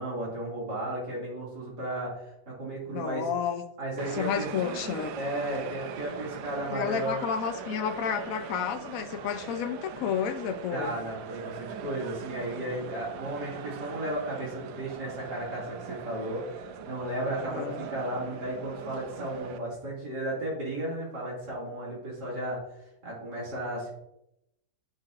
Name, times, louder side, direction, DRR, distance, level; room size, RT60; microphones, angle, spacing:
voice 1, 0.0-3.3 3.8-4.5 5.2-7.2 10.7-16.4 16.8-22.6 23.0-24.0, right 1 dB, 65° right, -6 dB, 3.1 m, -34 dB
voice 2, 2.9-3.6 4.1-5.1 6.7-11.0 17.4-17.8, left 7 dB, 60° left, 7 dB, 0.9 m, -31 dB
sound 1, 4.0-19.6, right 7 dB, 90° right, 1.4 m, -41 dB
10.5 x 5.7 x 2.5 m, 0.82 s
omnidirectional pair, 2.0 m